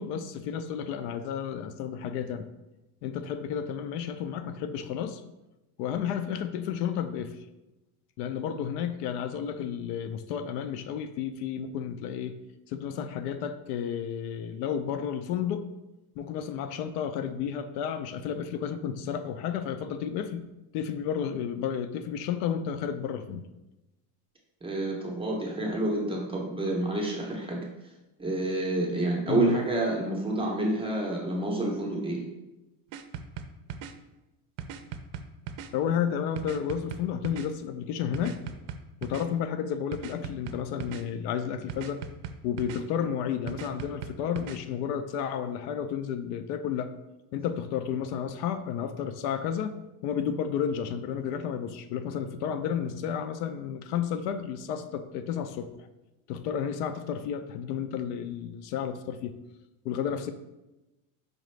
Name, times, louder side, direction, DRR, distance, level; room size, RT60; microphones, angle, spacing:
voice 1, 0.0-2.5 3.0-5.2 5.8-7.3 8.2-12.3 12.7-15.7 16.2-20.4 20.7-23.5 29.3-29.6 35.7-38.4 39.0-42.0 42.4-46.9 47.3-49.7 50.0-55.9 56.3-59.4 59.8-60.3, left 8 dB, 80° left, 9 dB, 0.5 m, -32 dB
voice 2, 24.6-27.7 28.2-32.2, right 2 dB, 10° right, -2 dB, 0.5 m, -28 dB
sound 1, 32.9-33.9 34.6-35.7 36.4-37.5 38.1-39.3 39.9-41.0 41.7-42.8 43.5-44.6, right 7 dB, 70° right, 0.5 m, -38 dB
5.1 x 2.4 x 3.1 m, 0.99 s
supercardioid pair, 135°, 47 cm